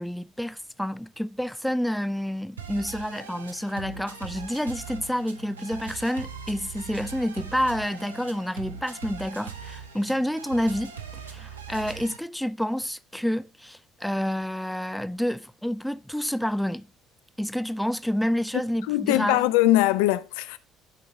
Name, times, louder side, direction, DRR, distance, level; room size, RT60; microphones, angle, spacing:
voice 1, 0.0-16.9 17.4-19.5, equal, ahead, 0.4 m, -29 dB
sound 1, 2.6-12.2, right 6 dB, 85° right, 0.7 m, -40 dB
voice 2, 18.9-20.6, left 15 dB, 70° left, 0.4 m, -21 dB
10.5 x 4.6 x 3.8 m
figure-of-eight pair, 55°, 0 cm